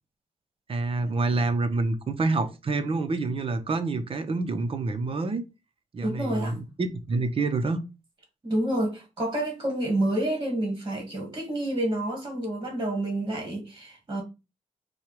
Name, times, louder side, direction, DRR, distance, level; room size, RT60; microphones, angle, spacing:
voice 1, 0.7-5.4 5.9-7.8, right 3 dB, 45° right, 0.8 m, -27 dB
voice 2, 6.0-6.6 8.4-14.2, right 1 dB, 30° right, 1.6 m, -28 dB
4.4 x 2.4 x 4.8 m
wide cardioid pair, 105°, 13 cm